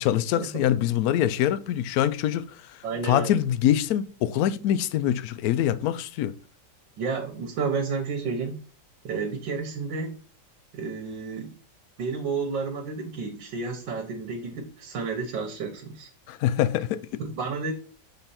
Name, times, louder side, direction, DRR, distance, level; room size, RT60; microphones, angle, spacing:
voice 1, 0.0-2.5 3.0-6.3 16.3-17.2, left 11 dB, 70° left, 0.9 m, -24 dB
voice 2, 2.8-3.4 7.0-8.6 9.0-10.2 10.7-11.6 12.0-16.1 17.2-17.7, right 4 dB, 90° right, 1.7 m, -31 dB
6.6 x 4.1 x 4.2 m
omnidirectional pair, 1.9 m